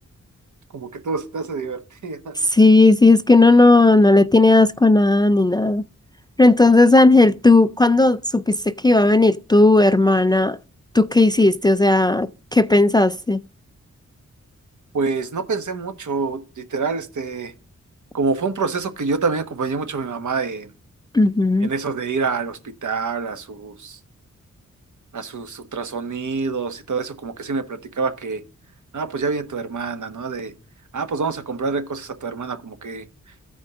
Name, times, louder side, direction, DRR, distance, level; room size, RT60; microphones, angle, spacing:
voice 1, 0.7-2.3 14.9-17.5 18.1-20.7 21.6-24.0 25.1-28.4 28.9-30.5 30.9-33.0, right 4 dB, 70° right, 1.3 m, -26 dB
voice 2, 2.4-5.8 6.4-10.6 10.9-13.4 21.1-21.7, left 2 dB, 15° left, 0.4 m, -15 dB
14.0 x 5.0 x 3.7 m
cardioid pair, 50°, 31 cm